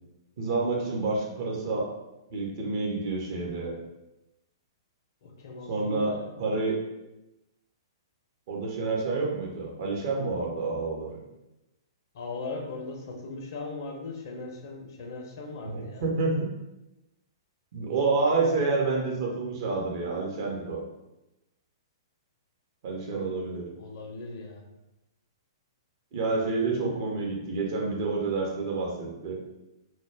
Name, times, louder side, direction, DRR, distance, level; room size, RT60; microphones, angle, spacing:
voice 1, 0.4-1.9 2.3-3.7 5.7-6.1 6.4-6.8 8.5-11.2 15.6-16.5 17.7-20.8 22.8-23.7 26.1-29.4, right 3 dB, 50° right, -2 dB, 0.7 m, -28 dB
voice 2, 5.2-6.4 12.1-16.1 23.1-23.4 23.8-24.7, left 3 dB, 55° left, 2 dB, 0.5 m, -39 dB
2.2 x 2.1 x 3.3 m, 0.96 s
figure-of-eight pair, 115°, 2 cm